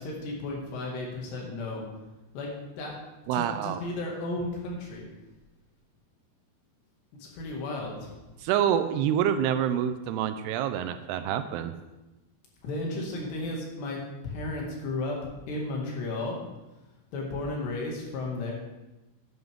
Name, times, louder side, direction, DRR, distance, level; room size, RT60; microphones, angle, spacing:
voice 1, 0.0-1.8 2.3-2.5 2.8-3.0 3.3-5.0 7.2-8.1 12.6-15.2 15.5-16.4 17.1-18.5, left 2 dB, 85° left, -2 dB, 4.3 m, -34 dB
voice 2, 3.3-3.8 8.4-11.7, right 9 dB, 85° right, 10 dB, 2.6 m, -27 dB
11.5 x 9.7 x 3.6 m, 1.0 s
omnidirectional pair, 4.8 m